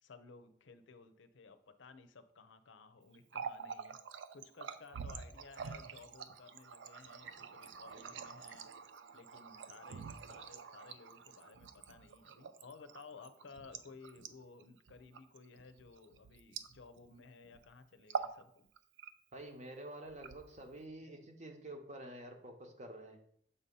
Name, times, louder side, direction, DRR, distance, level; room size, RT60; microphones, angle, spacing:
voice 1, 0.0-4.0 4.3-8.7 9.1-18.7 21.0-21.2, left 4 dB, 85° left, 10 dB, 0.6 m, -57 dB
Water tap faucet, 3.1-17.2 17.4-17.7 18.0-18.4 18.8-19.4 20.1-20.8, right 6 dB, 75° right, 0.4 m, -46 dB
voice 2, 19.3-23.2, right 1 dB, 40° right, 4 dB, 0.8 m, -49 dB
6.8 x 2.8 x 5.3 m, 0.66 s
head